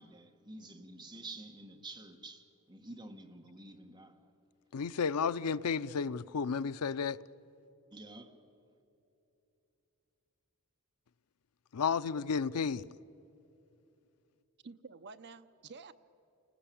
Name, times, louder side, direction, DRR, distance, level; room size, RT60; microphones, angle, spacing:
voice 1, 0.0-4.3 7.9-8.4, right 2 dB, 20° right, 1.7 m, -49 dB
voice 2, 4.7-7.2 11.7-12.8, left 6 dB, 85° left, 0.5 m, -32 dB
voice 3, 14.6-15.9, right 4 dB, 50° right, 0.7 m, -50 dB
29.5 x 20.0 x 8.7 m
head